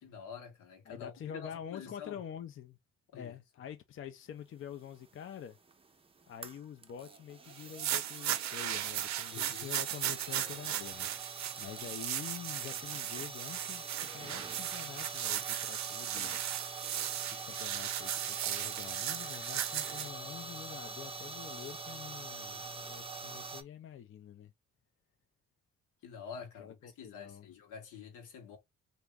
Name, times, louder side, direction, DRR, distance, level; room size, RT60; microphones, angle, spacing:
voice 1, 0.0-2.2 3.1-3.4 9.3-9.7 26.0-28.6, left 7 dB, 80° left, 1.2 m, -48 dB
voice 2, 0.9-2.8 3.1-5.6 6.3-16.5 17.3-24.5 26.6-27.5, left 9 dB, 45° left, 0.5 m, -47 dB
sound 1, 4.8-23.6, right 4 dB, 20° right, 0.5 m, -45 dB
sound 2, 7.6-20.1, right 12 dB, 65° right, 0.5 m, -37 dB
2.9 x 2.6 x 3.4 m
cardioid pair, 90°, 30 cm